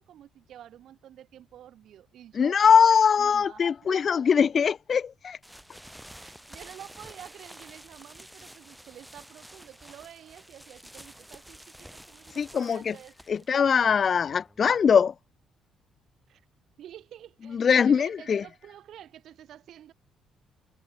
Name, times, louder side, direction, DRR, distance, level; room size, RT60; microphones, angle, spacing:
voice 1, 0.0-4.0 4.4-4.5 6.2-13.8 16.3-16.4 16.8-19.9, right 11 dB, 55° right, 5.4 m, -49 dB
voice 2, 2.3-5.4 12.3-13.0 13.3-15.1 17.4-18.4, left 7 dB, 30° left, 1.3 m, -22 dB
sound 1, 5.4-15.0, equal, ahead, 5.3 m, -50 dB
cardioid pair, 170°, 0 cm